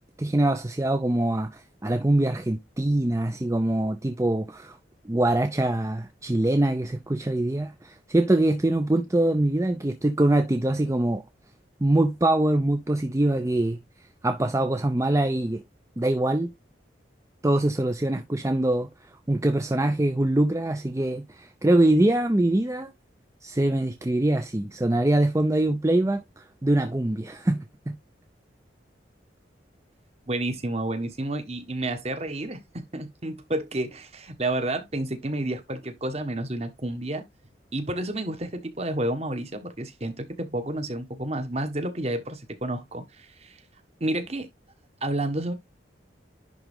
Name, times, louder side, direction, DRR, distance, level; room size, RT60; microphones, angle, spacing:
voice 1, 0.2-4.8 5.0-11.2 11.8-15.6 16.0-16.5 17.4-18.9 19.3-22.9 23.4-28.0, right 1 dB, 15° right, 0.5 m, -24 dB
voice 2, 30.3-37.2 37.7-43.6 44.0-44.5 45.0-45.5, right 1 dB, 35° right, 1.3 m, -30 dB
10.5 x 3.7 x 3.5 m
head